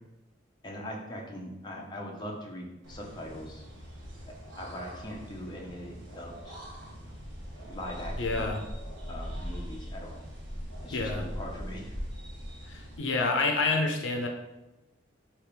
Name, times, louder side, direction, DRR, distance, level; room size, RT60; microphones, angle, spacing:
voice 1, 0.6-3.6 4.6-6.5 7.6-8.5 9.1-10.2 10.8-11.9, equal, 25° left, -1 dB, 0.6 m, -41 dB
sound 1, 2.8-13.0, equal, 65° right, 1.2 m, -41 dB
voice 2, 8.2-8.6 10.9-11.3 12.7-14.3, left 3 dB, 65° left, 3 dB, 0.5 m, -28 dB
3.4 x 2.8 x 4.7 m, 0.99 s
head